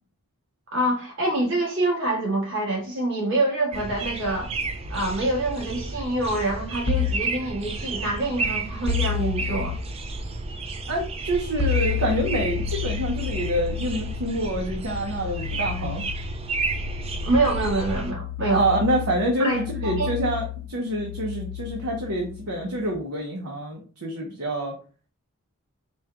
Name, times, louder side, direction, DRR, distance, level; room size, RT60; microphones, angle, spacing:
voice 1, 0.7-4.5 4.9-9.8 17.2-18.6 19.4-20.1, right 2 dB, 60° right, -3 dB, 1.7 m, -26 dB
sound 1, 3.7-18.1, right 3 dB, 25° right, 0.4 m, -32 dB
sound 2, 6.9-7.3 8.9-9.8 11.6-22.9, left 9 dB, 80° left, 0.6 m, -31 dB
voice 2, 10.9-16.0 18.5-24.7, right 1 dB, 80° right, -1 dB, 0.8 m, -27 dB
4.3 x 2.3 x 3.6 m, 0.38 s
head